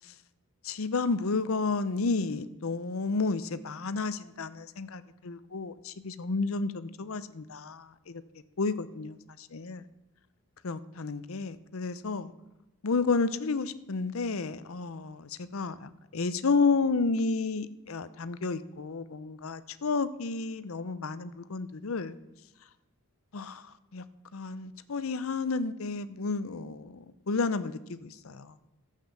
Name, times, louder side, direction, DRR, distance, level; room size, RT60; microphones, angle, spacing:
voice 1, 0.6-8.2 8.6-9.8 10.6-12.3 12.8-22.1 23.3-23.6 23.9-24.0 24.3-26.9 27.3-28.5, left 4 dB, 70° left, 14 dB, 0.7 m, -31 dB
11.5 x 8.3 x 6.8 m, 1.0 s
head